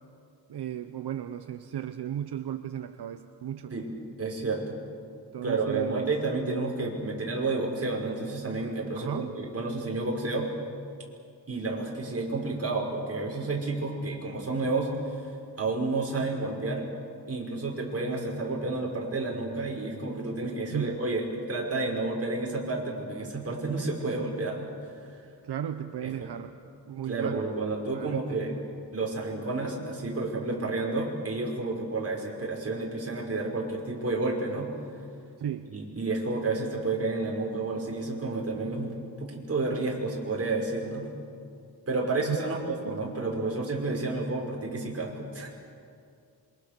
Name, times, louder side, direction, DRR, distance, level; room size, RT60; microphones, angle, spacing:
voice 1, 0.5-3.7 5.3-6.1 9.0-9.3 20.7-21.0 25.4-26.5 26.9-27.4 27.9-28.6 35.4-35.7 42.3-42.4 42.8-43.2, right 10 dB, 75° right, 9 dB, 0.9 m, -35 dB
voice 2, 4.2-4.6 5.4-10.5 11.5-15.3 15.6-16.8 17.3-24.9 26.0-26.3 27.0-28.5 28.9-34.7 35.7-38.9 39.2-41.1 41.9-45.5, right 3 dB, 35° right, -1 dB, 5.6 m, -30 dB
27.0 x 24.5 x 6.8 m, 2.3 s
wide cardioid pair, 115°, 40 cm